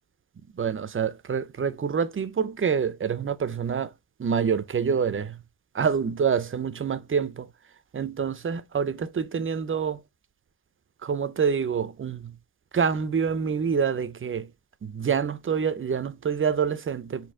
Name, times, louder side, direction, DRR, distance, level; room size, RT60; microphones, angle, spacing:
voice 1, 0.5-3.9 4.2-5.4 5.7-7.5 7.9-10.0 11.0-12.4 12.7-14.5 14.8-17.3, right 6 dB, 30° right, 0.4 m, -26 dB
4.3 x 2.6 x 3.6 m
wide cardioid pair, 105°, 45 cm